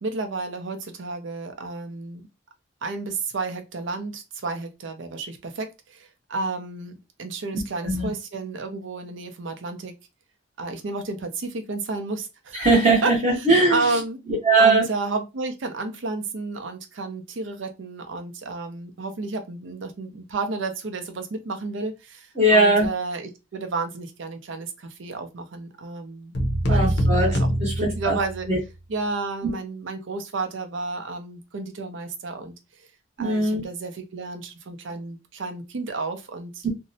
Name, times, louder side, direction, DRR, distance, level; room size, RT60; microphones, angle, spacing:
voice 1, 0.0-2.3 2.8-9.9 10.6-12.7 13.0-14.2 14.6-26.4 26.7-27.5 27.8-28.5 28.9-32.5 33.2-36.6, right 3 dB, 75° right, 0.5 m, -31 dB
voice 2, 7.8-8.1 12.5-13.8 14.4-14.8 22.4-22.9 26.7-28.2 28.5-28.6 29.4-29.5 33.2-33.6 36.6-36.7, right 2 dB, 35° right, 0.9 m, -20 dB
sound 1, 26.3-28.6, equal, 55° left, 0.6 m, -23 dB
2.6 x 2.0 x 2.6 m
head